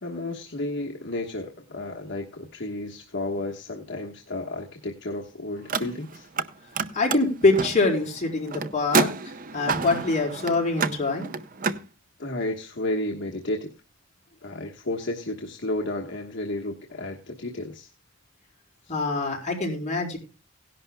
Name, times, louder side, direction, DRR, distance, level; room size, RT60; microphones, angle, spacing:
voice 1, 0.0-6.3 12.2-13.7 14.4-17.9, left 1 dB, 60° left, 1 dB, 1.3 m, -32 dB
Car, 5.6-6.5 6.7-11.8, right 4 dB, 40° right, 0.7 m, -29 dB
voice 2, 6.9-9.1 9.5-11.3 18.9-20.2, left 3 dB, 35° left, 0 dB, 4.2 m, -24 dB
17.5 x 11.0 x 2.2 m, 0.32 s
head